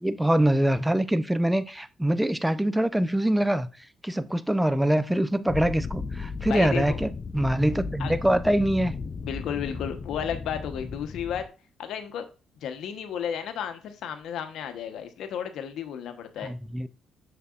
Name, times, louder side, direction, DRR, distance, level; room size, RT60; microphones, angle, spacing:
voice 1, 0.0-3.7 4.0-8.9 16.4-16.9, right 1 dB, 5° right, 0.6 m, -24 dB
sound 1, 5.5-11.5, left 4 dB, 40° left, 0.4 m, -35 dB
voice 2, 6.4-7.0 8.0-8.1 9.2-11.4 11.8-12.2 12.6-16.5, left 8 dB, 80° left, 1.1 m, -33 dB
6.8 x 6.7 x 2.5 m
cardioid pair, 90°, 0 cm